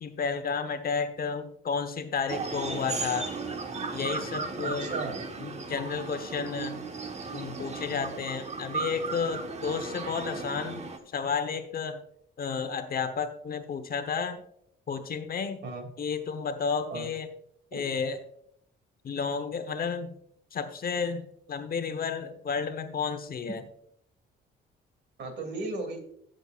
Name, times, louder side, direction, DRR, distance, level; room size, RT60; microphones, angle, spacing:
voice 1, 0.0-3.3 3.9-4.9 5.4-6.8 7.3-12.0 12.4-14.4 14.9-15.6 16.0-17.3 17.7-18.2 19.0-20.1 20.5-23.6, left 5 dB, 50° left, 9 dB, 1.0 m, -32 dB
sound 1, 2.3-11.0, right 4 dB, 35° right, 1.2 m, -36 dB
voice 2, 4.6-5.2 15.6-15.9 16.9-17.1 17.7-17.8 25.2-26.0, right 3 dB, 65° right, 4 dB, 2.6 m, -35 dB
18.0 x 6.5 x 2.4 m, 0.69 s
cardioid pair, 90°, 20 cm